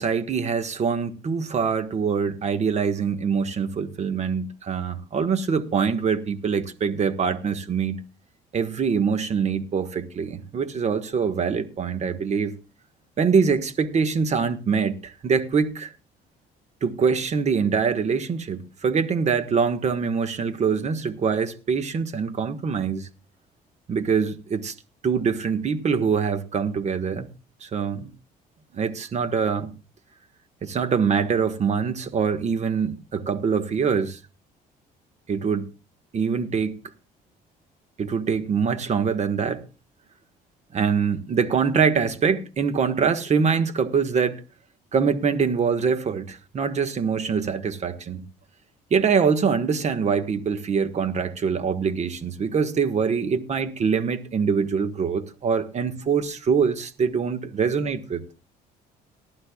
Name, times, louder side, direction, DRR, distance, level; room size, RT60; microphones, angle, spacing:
voice 1, 0.0-8.0 8.5-12.5 13.2-15.9 16.8-23.1 23.9-24.7 25.0-27.3 27.6-28.1 28.7-29.7 30.6-34.2 35.3-35.7 36.1-36.8 38.0-39.6 40.7-44.4 44.9-48.2 48.9-58.2, right 6 dB, 40° right, 1.5 m, -24 dB
18.5 x 12.0 x 2.4 m
cardioid pair, 110°, 17 cm